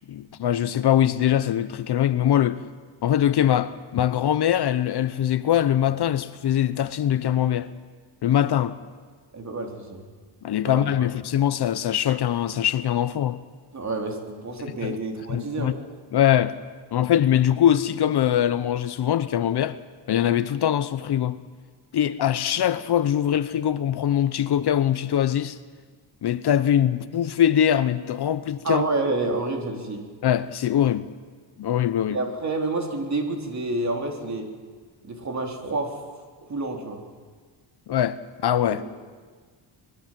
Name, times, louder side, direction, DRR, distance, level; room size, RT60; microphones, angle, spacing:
voice 1, 0.1-2.6 3.0-7.7 8.2-8.8 10.4-13.4 14.8-15.0 15.3-15.7 16.1-16.6 16.9-19.8 20.1-21.4 21.9-25.6 26.2-28.8 30.2-31.1 31.6-32.2 37.9-38.2 38.4-38.8, left 10 dB, 55° left, 0.9 m, -22 dB
voice 2, 9.3-10.0 10.7-11.1 13.7-15.7 28.6-30.0 32.1-34.5 35.0-36.0 36.4-37.0 38.7-38.8, right 2 dB, 35° right, 3.9 m, -29 dB
25.5 x 21.0 x 7.7 m
cardioid pair, 140°, 47 cm